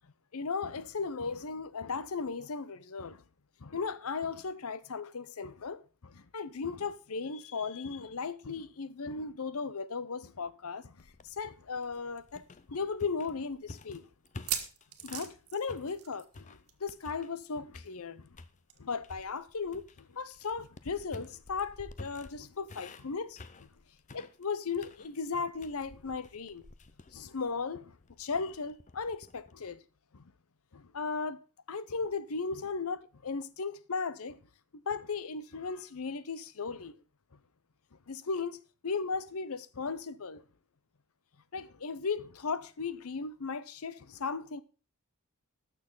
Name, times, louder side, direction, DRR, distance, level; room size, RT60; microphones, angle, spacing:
voice 1, 0.3-3.2 3.6-12.4 12.7-14.1 15.0-18.3 18.8-23.7 24.1-26.6 27.1-29.8 30.1-30.2 30.7-31.4 31.7-34.4 34.7-36.9 38.1-38.6 38.8-40.4 41.5-44.6, left 4 dB, 70° left, 0.7 m, -36 dB
sound 1, 11.0-15.4 15.7-17.4 17.7-18.6 19.0-29.5, left 3 dB, 35° left, 0.6 m, -51 dB
sound 2, 11.6-11.7 12.0-12.1 12.7-12.8 14.3-16.4 16.7-16.9 17.1-17.2 18.7-18.8, right 10 dB, 75° right, 1.7 m, -38 dB
19.0 x 6.7 x 3.9 m
head